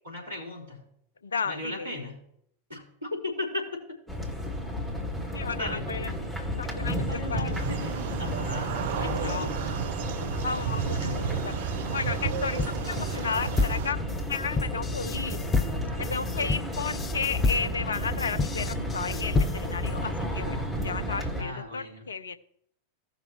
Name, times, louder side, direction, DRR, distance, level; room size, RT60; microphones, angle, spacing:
voice 1, 0.0-0.8 1.5-2.2 2.7-4.0 5.6-5.9 7.1-9.5 10.9-11.4 21.4-22.0, left 2 dB, 80° right, -2 dB, 4.1 m, -36 dB
voice 2, 1.2-1.9 5.3-6.1 6.5-7.6 9.0-9.5 10.4-11.5 11.9-15.5 16.0-22.4, left 5 dB, 70° left, 13 dB, 0.6 m, -33 dB
sound 1, 4.1-21.4, equal, ahead, 2.3 m, -32 dB
sound 2, 7.5-13.9, right 8 dB, 55° right, 0.6 m, -33 dB
sound 3, 12.6-19.9, left 3 dB, 25° left, 0.6 m, -29 dB
16.5 x 6.0 x 3.0 m, 0.71 s
figure-of-eight pair, 90°, 0 cm